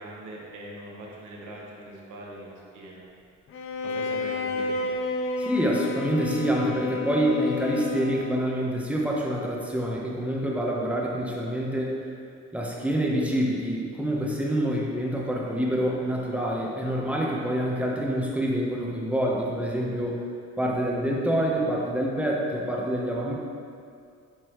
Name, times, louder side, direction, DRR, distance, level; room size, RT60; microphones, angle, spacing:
voice 1, 0.0-3.0 3.8-4.9, right 1 dB, 75° right, -3 dB, 1.4 m, -41 dB
Bowed string instrument, 3.5-8.6, left 3 dB, 45° left, 0.6 m, -31 dB
voice 2, 5.4-12.0 12.5-20.2 20.6-23.4, equal, 5° right, -3 dB, 1.1 m, -26 dB
7.9 x 4.2 x 3.2 m, 2.3 s
cardioid pair, 90°, 30 cm